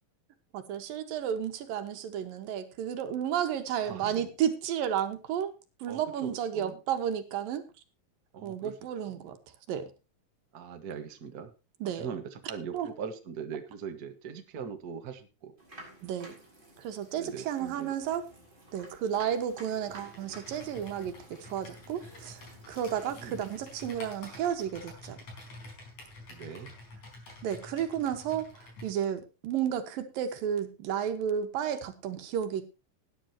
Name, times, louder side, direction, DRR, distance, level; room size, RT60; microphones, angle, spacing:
voice 1, 0.5-5.5 5.8-7.6 8.4-9.4 9.7-9.9 11.8-12.1 12.7-12.9 16.0-16.4 16.8-18.2 18.7-25.2 27.4-32.7, right 9 dB, 80° right, 8 dB, 3.2 m, -32 dB
voice 2, 3.8-4.3 5.9-6.8 8.3-8.8 9.0-9.3 10.5-11.5 11.8-15.5 17.2-17.9 23.1-23.4 26.3-26.7, right 7 dB, 45° right, 6 dB, 1.3 m, -41 dB
sound 1, 15.6-24.2, right 1 dB, 15° right, 5.1 m, -53 dB
Computer keyboard, 19.9-28.9, left 2 dB, 50° left, 5.8 m, -49 dB
18.5 x 10.0 x 2.9 m, 0.29 s
omnidirectional pair, 4.0 m